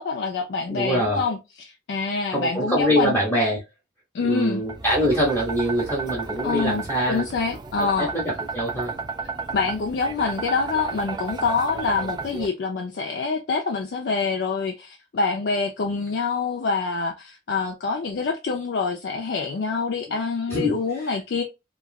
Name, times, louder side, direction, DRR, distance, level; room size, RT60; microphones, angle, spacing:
voice 1, 0.0-3.1 4.1-4.6 6.4-8.1 9.5-21.4, left 4 dB, 65° left, 0.4 m, -26 dB
voice 2, 0.7-1.3 2.3-3.6 4.2-7.2 8.0-8.9 20.1-20.2 20.5-20.8, equal, 10° left, 0.8 m, -24 dB
sound 1, 4.7-12.5, right 4 dB, 25° right, 0.3 m, -33 dB
3.0 x 2.4 x 2.3 m
head